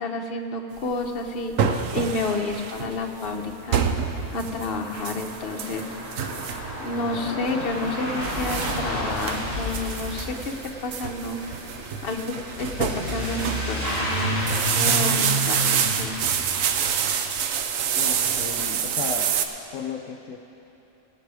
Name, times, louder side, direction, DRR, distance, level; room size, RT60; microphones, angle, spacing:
voice 1, 0.0-3.9 4.3-6.0 6.8-10.5 10.8-11.4 12.0-12.2 12.6-14.4 14.7-16.2, left 3 dB, 50° left, 3 dB, 1.0 m, -30 dB
sound 1, 0.8-19.4, right 7 dB, 85° right, 1.1 m, -27 dB
Truck / Accelerating revving vroom, 3.4-3.5 3.7-17.1, equal, 45° right, 3.2 m, -31 dB
voice 2, 17.9-19.3 19.7-20.4, left 6 dB, 80° left, 6 dB, 1.0 m, -34 dB
19.0 x 8.8 x 4.8 m, 3.0 s
omnidirectional pair, 1.3 m